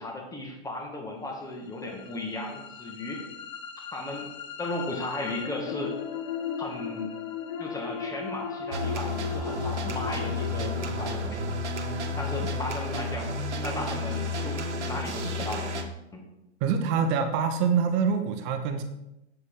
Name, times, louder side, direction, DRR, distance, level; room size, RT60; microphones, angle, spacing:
voice 1, 0.0-3.2 3.9-4.3 4.6-6.0 6.6-7.1 7.6-11.4 12.2-13.3 13.6-15.7 16.1-16.2, left 2 dB, 10° left, 1 dB, 2.1 m, -35 dB
sound 1, 1.6-13.6, left 6 dB, 45° left, 1.3 m, -38 dB
sound 2, 8.7-15.8, left 2 dB, 75° right, 1.5 m, -31 dB
voice 2, 16.6-18.8, right 6 dB, 35° right, 7 dB, 1.3 m, -25 dB
8.1 x 7.7 x 5.0 m, 0.90 s
figure-of-eight pair, 115°, 34 cm